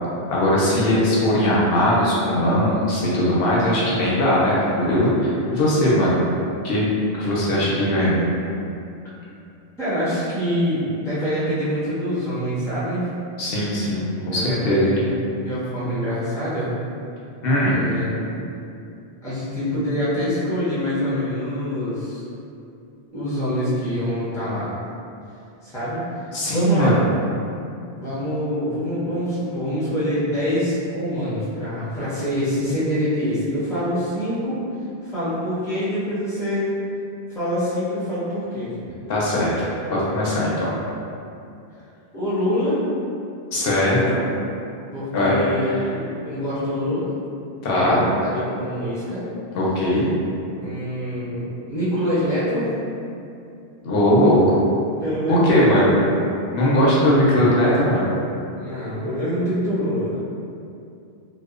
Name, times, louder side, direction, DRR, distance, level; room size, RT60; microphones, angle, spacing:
voice 1, 0.3-6.2 6.6-8.2 13.4-14.9 17.4-17.8 26.3-26.9 39.1-40.7 43.5-44.2 45.1-45.4 45.7-45.8 47.6-48.0 49.5-50.1 53.8-54.6 55.3-56.0 56.5-58.1, left 1 dB, 70° left, -6 dB, 0.7 m, -19 dB
voice 2, 9.8-13.1 14.3-16.7 17.6-18.5 19.2-22.2 23.1-24.7 25.6-26.0 26.5-27.1 28.0-34.6 35.0-36.7 37.3-38.7 42.1-42.8 44.9-47.1 47.6-49.2 50.6-52.7 55.0-56.3 58.6-60.1, equal, 5° left, -11 dB, 0.6 m, -25 dB
2.8 x 2.1 x 2.3 m, 2.6 s
omnidirectional pair, 1.0 m